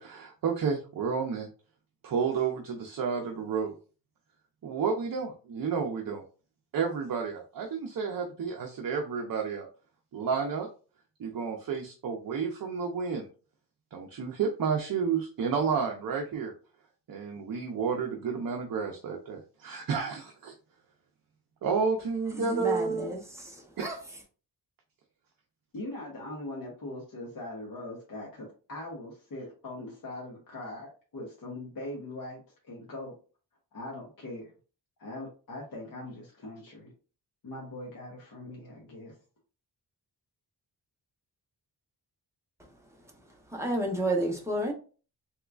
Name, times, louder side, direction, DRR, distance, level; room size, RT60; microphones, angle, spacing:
voice 1, 0.0-1.5 2.0-3.8 4.6-6.2 6.7-9.7 10.1-10.7 11.2-13.3 13.9-16.5 17.1-20.5 21.6-23.2 23.8-24.0, right 5 dB, 55° right, 2 dB, 0.5 m, -31 dB
voice 2, 22.3-24.0 42.6-42.7 43.2-44.7, right 1 dB, 5° right, 0 dB, 0.6 m, -32 dB
voice 3, 25.7-32.4 32.7-33.1 33.7-34.5 35.0-36.9 37.4-39.1, left 1 dB, 50° left, -3 dB, 0.9 m, -41 dB
3.5 x 3.0 x 2.3 m, 0.37 s
wide cardioid pair, 175°, 43 cm